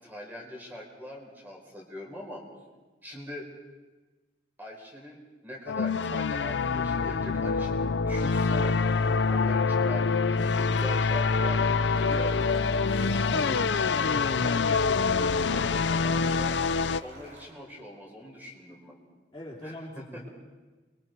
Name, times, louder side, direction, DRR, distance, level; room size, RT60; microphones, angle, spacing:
voice 1, 0.0-2.4 3.0-3.5 4.6-8.8 9.3-12.6 13.3-16.5 17.0-18.9 19.6-20.2, equal, 10° right, -1 dB, 4.9 m, -42 dB
sound 1, 5.7-17.0, left 4 dB, 75° left, 0.6 m, -25 dB
sound 2, 11.9-17.5, right 1 dB, 70° right, 6.4 m, -50 dB
voice 2, 13.0-14.4 19.3-20.3, left 1 dB, 20° left, -6 dB, 3.4 m, -41 dB
29.0 x 23.0 x 4.6 m, 1.2 s
head